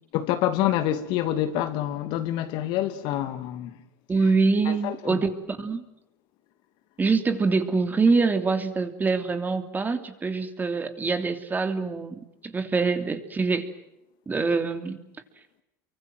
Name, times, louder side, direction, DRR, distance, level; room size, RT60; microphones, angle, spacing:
voice 1, 0.1-3.8 4.7-5.2, left 12 dB, 60° left, 2.5 m, -27 dB
voice 2, 4.1-5.8 7.0-13.7 14.3-15.0, right 4 dB, 20° right, 3.0 m, -25 dB
29.0 x 24.5 x 7.9 m
supercardioid pair, 100°, 9 cm